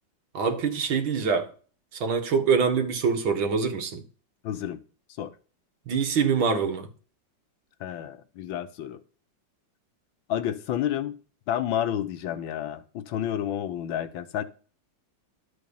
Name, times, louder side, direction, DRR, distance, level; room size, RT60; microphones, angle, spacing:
voice 1, 0.3-1.5 1.9-4.0 5.9-6.9, right 5 dB, 85° right, 2.4 m, -24 dB
voice 2, 4.4-4.8 5.2-5.3 7.8-9.0 10.3-11.2 11.5-14.4, left 10 dB, 85° left, 1.7 m, -30 dB
12.0 x 5.2 x 7.1 m
omnidirectional pair, 2.1 m